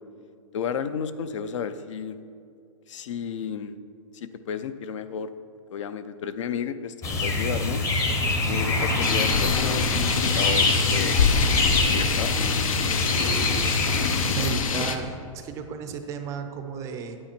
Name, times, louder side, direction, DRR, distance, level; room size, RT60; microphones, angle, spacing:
voice 1, 0.5-2.2 2.9-3.7 4.1-5.3 5.7-7.8 8.5-11.2 11.6-12.3, left 7 dB, 60° left, 12 dB, 0.6 m, -32 dB
sound 1, 7.0-14.5, left 2 dB, 15° left, 0.8 m, -25 dB
sound 2, 9.0-15.0, left 5 dB, 80° left, 0.9 m, -25 dB
voice 2, 14.3-17.2, right 6 dB, 15° right, 7 dB, 0.5 m, -34 dB
9.6 x 8.7 x 4.4 m, 2.4 s
hypercardioid pair, 155°, 17 cm